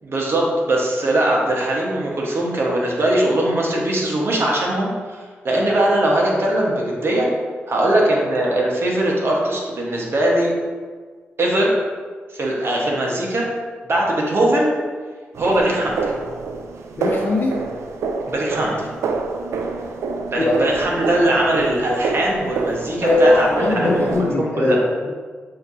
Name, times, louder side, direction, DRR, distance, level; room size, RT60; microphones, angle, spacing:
voice 1, 0.0-7.3 7.7-10.5 11.4-11.7 12.3-13.5 13.8-14.7 15.4-16.1 18.3-18.9 20.3-24.8, right 1 dB, 60° right, -2 dB, 1.1 m, -20 dB
sound 1, 15.3-24.3, right 4 dB, 80° right, 0.3 m, -27 dB
voice 2, 17.0-17.6 20.4-20.5 23.0-25.1, left 2 dB, 55° left, -5 dB, 0.7 m, -20 dB
6.5 x 2.8 x 2.6 m, 1.5 s
supercardioid pair, 45°, 5 cm